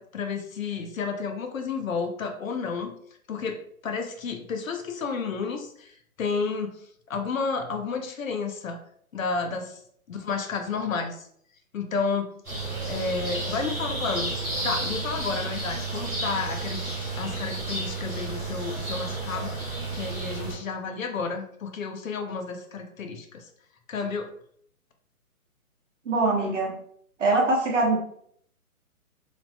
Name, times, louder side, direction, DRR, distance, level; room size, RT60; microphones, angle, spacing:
voice 1, 0.0-2.9 3.3-5.9 6.2-8.8 9.1-9.8 10.1-11.3 11.7-12.3 12.9-16.9 17.1-19.5 19.9-23.5 23.9-24.3, left 5 dB, 65° left, 5 dB, 0.6 m, -31 dB
sound 1, 12.4-20.5, right 3 dB, 5° right, 0.8 m, -32 dB
voice 2, 26.1-26.7 27.2-28.0, right 2 dB, 55° right, 0 dB, 0.8 m, -23 dB
3.0 x 2.0 x 2.7 m, 0.65 s
hypercardioid pair, 175°, 44 cm